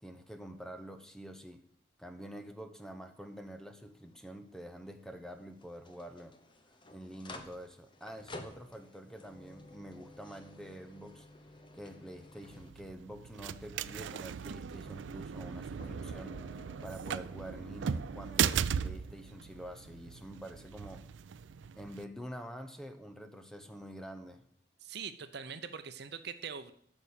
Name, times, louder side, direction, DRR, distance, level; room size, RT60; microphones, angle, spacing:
voice 1, 0.0-1.6 2.0-6.4 6.9-11.3 11.7-21.1 21.7-24.5, equal, 5° left, 8 dB, 0.7 m, -47 dB
sound 1, 3.0-12.7, left 2 dB, 25° left, 1.0 m, -53 dB
sound 2, 12.4-22.0, right 7 dB, 85° right, 0.4 m, -37 dB
sound 3, 15.8-21.1, equal, 50° left, 3.9 m, -57 dB
voice 2, 24.8-26.7, right 6 dB, 60° right, 11 dB, 0.7 m, -42 dB
8.9 x 6.2 x 7.0 m, 0.64 s
head